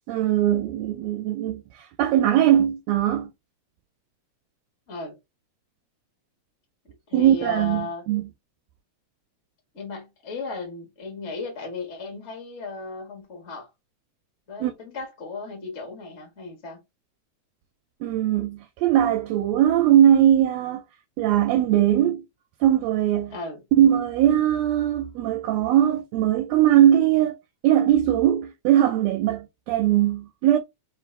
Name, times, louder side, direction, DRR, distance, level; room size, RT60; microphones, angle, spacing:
voice 1, 0.1-1.6 2.0-3.3 7.1-8.3 14.6-14.7 18.0-20.8 21.2-22.2 22.6-23.4 23.7-27.4 27.6-30.6, right 11 dB, 80° right, 1.6 m, -20 dB
voice 2, 7.1-8.0 9.7-13.7 14.5-16.8 23.3-23.6, left 3 dB, 35° left, 1.2 m, -35 dB
4.0 x 3.3 x 3.1 m
omnidirectional pair, 3.3 m